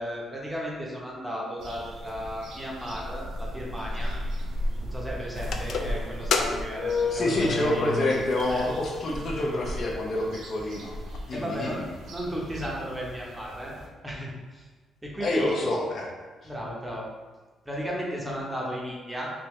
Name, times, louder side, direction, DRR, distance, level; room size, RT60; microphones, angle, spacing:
voice 1, 0.0-4.1 4.8-7.8 8.5-8.7 11.3-11.8 12.1-13.7 14.0-14.6 15.0-15.6 16.4-17.0 17.7-19.3, equal, 10° right, -4 dB, 0.8 m, -35 dB
sound 1, 1.6-13.9, equal, 80° right, 0.7 m, -37 dB
sound 2, 5.4-8.5 8.8-8.9 9.7-9.8 10.2-10.3 10.6-11.2, left 4 dB, 70° left, 0.3 m, -29 dB
voice 2, 7.1-10.9 11.3-11.9 15.2-16.1, left 2 dB, 50° left, -1 dB, 0.7 m, -27 dB
3.5 x 2.7 x 3.1 m, 1.4 s
cardioid pair, 90°, 0 cm